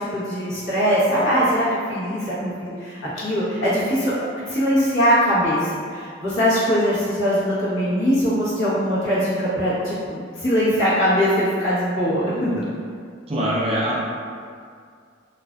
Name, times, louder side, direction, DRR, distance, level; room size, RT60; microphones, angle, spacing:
voice 1, 0.0-5.6 5.9-12.7, equal, 65° left, -11 dB, 1.0 m, -21 dB
voice 2, 13.3-14.0, equal, 30° right, -7 dB, 0.4 m, -23 dB
2.5 x 2.3 x 2.2 m, 2.2 s
head